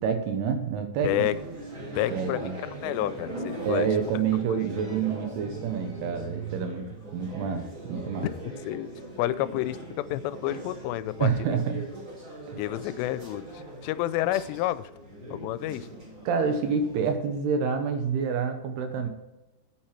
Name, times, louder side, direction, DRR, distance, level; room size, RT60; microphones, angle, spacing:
voice 1, 0.0-1.3 2.1-2.6 3.7-8.3 11.2-11.8 12.5-12.6 16.3-19.1, right 6 dB, 75° right, 7 dB, 2.9 m, -28 dB
voice 2, 1.0-1.4 2.0-2.5 2.8-3.9 4.5-4.7 8.5-8.9 9.2-11.3 12.6-14.9 15.3-15.9, left 14 dB, 85° left, 15 dB, 2.7 m, -29 dB
sound 1, 1.0-17.1, right 2 dB, 30° right, 3.5 m, -40 dB
9.8 x 8.9 x 4.5 m, 1.0 s
omnidirectional pair, 5.0 m